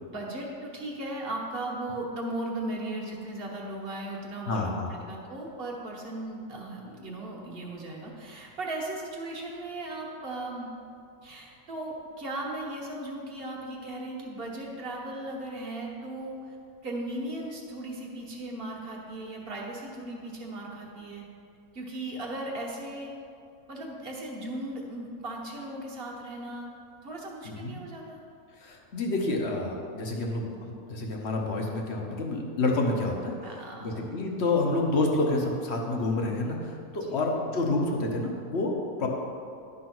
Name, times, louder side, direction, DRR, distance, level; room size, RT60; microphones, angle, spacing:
voice 1, 0.1-10.7 11.2-16.6 16.8-21.2 21.7-23.1 23.7-26.7 27.0-28.2 33.4-34.1 36.8-37.2 39.0-39.1, right 1 dB, 40° right, -1 dB, 1.4 m, -37 dB
voice 2, 4.5-4.9 27.4-27.7 28.6-33.3 33.8-39.1, left 2 dB, 50° left, 0 dB, 1.1 m, -28 dB
11.5 x 4.0 x 6.0 m, 2.5 s
omnidirectional pair, 1.6 m